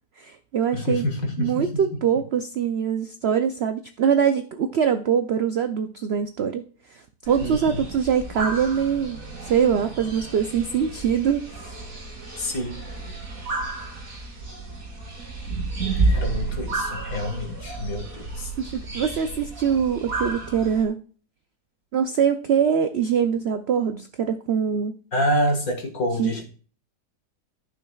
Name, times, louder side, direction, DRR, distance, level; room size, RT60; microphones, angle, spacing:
voice 1, 0.2-1.0 1.4-6.6 6.9-11.8 18.6-21.0 21.9-24.9 26.2-26.4, right 7 dB, 80° right, 8 dB, 0.5 m, -23 dB
voice 2, 0.7-1.8 7.4-7.9 12.4-12.9 16.1-18.8 25.1-26.4, equal, 60° left, 2 dB, 2.1 m, -27 dB
sound 1, 7.2-20.8, right 3 dB, 55° right, 2.7 m, -31 dB
14.5 x 6.1 x 2.3 m, 0.42 s
omnidirectional pair, 1.7 m